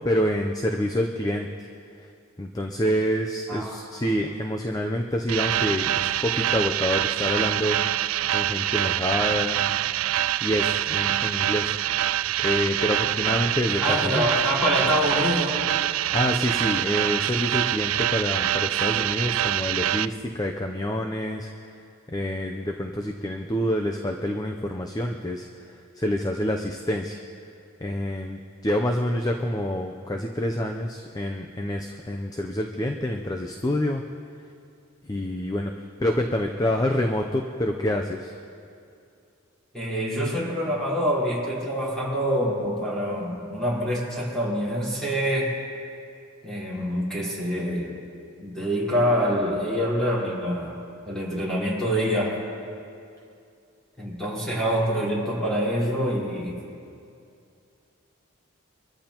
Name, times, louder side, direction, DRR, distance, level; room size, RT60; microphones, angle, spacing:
voice 1, 0.0-1.5 2.4-7.8 8.3-9.6 10.4-11.7 12.4-14.2 16.1-21.5 22.1-25.5 26.0-27.2 27.8-34.0 35.0-35.7 36.0-38.4, equal, 20° left, 3 dB, 0.6 m, -27 dB
sound 1, 5.3-20.1, right 12 dB, 85° right, 0.3 m, -25 dB
voice 2, 13.8-15.6 39.7-45.5 46.4-48.0 48.4-52.4 54.0-56.6, equal, 5° left, -8 dB, 4.3 m, -26 dB
24.5 x 14.0 x 3.0 m, 2.5 s
head